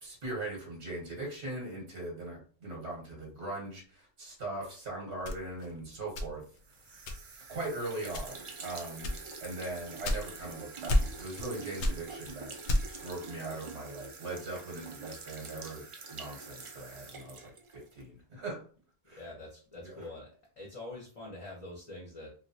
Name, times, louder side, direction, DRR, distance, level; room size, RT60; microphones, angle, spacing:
voice 1, 0.0-6.4 7.5-9.1 9.4-12.7 13.0-15.8 16.1-18.6 19.1-19.2 19.8-19.9, right 2 dB, 85° right, -2 dB, 1.3 m, -40 dB
sound 1, 5.2-6.6 7.1-7.5 8.1-8.5 9.0-10.5 10.9-11.5 11.8-13.1, left 1 dB, 90° left, 0.9 m, -31 dB
sound 2, 6.6-18.1, right 4 dB, 50° right, 0.4 m, -46 dB
voice 2, 19.1-22.3, left 2 dB, 35° left, -3 dB, 0.8 m, -45 dB
3.1 x 2.6 x 2.7 m, 0.40 s
omnidirectional pair, 1.1 m